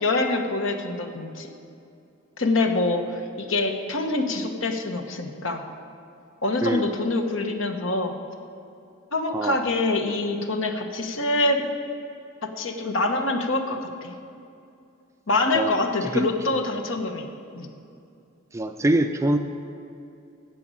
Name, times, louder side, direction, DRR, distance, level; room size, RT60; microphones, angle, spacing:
voice 1, 0.0-1.5 2.4-3.0 3.4-5.6 6.4-8.1 9.1-11.7 12.4-14.1 15.3-17.3 17.5-17.7, left 2 dB, 65° left, 5 dB, 1.1 m, -25 dB
voice 2, 6.6-6.9 9.3-9.6 15.5-15.7 16.0-16.3 18.5-19.4, right 1 dB, 15° right, 7 dB, 0.4 m, -24 dB
14.5 x 5.2 x 9.0 m, 2.5 s
head